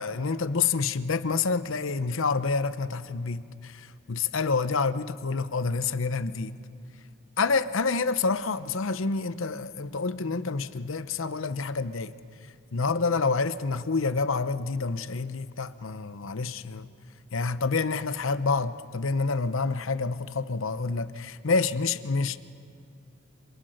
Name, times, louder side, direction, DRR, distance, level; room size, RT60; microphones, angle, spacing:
voice 1, 0.0-6.5 7.4-12.1 12.7-16.9 17.3-22.4, left 4 dB, 70° left, 13 dB, 0.8 m, -28 dB
28.0 x 27.0 x 6.5 m, 2.3 s
head